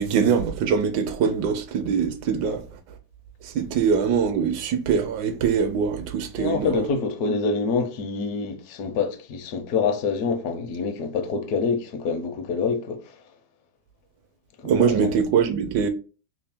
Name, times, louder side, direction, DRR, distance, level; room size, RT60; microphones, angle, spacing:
voice 1, 0.0-2.6 3.4-6.9 14.6-15.9, right 6 dB, 75° right, 1.2 m, -23 dB
voice 2, 6.4-13.2 14.6-15.1, left 5 dB, 65° left, 1.0 m, -26 dB
3.3 x 2.7 x 3.4 m
omnidirectional pair, 2.0 m